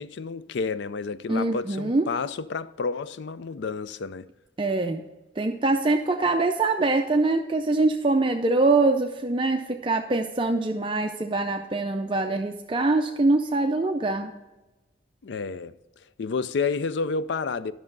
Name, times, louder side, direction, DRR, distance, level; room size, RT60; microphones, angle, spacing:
voice 1, 0.0-4.3 15.2-15.7 16.2-17.7, left 4 dB, 70° left, 0.4 m, -30 dB
voice 2, 1.3-2.1 4.6-5.0 5.4-14.3, right 2 dB, 25° right, 0.4 m, -24 dB
11.0 x 6.2 x 3.9 m
head